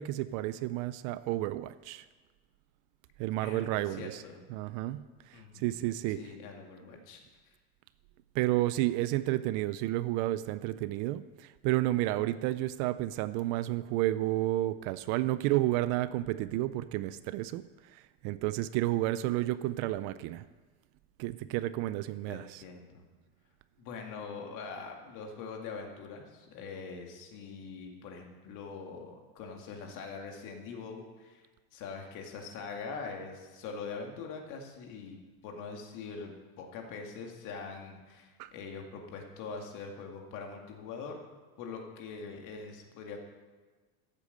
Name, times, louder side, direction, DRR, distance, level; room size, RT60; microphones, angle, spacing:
voice 1, 0.0-2.0 3.2-4.2 4.5-5.0 5.3-6.2 8.3-17.6 17.9-20.4 21.2-22.6 38.4-38.5, right 16 dB, 50° right, 14 dB, 0.5 m, -31 dB
voice 2, 3.4-4.4 5.3-7.2 7.5-7.6 22.3-23.1 23.8-31.4 31.7-41.2 41.6-43.2, left 5 dB, 50° left, 2 dB, 2.2 m, -43 dB
13.5 x 8.4 x 6.6 m, 1.4 s
cardioid pair, 165°, 41 cm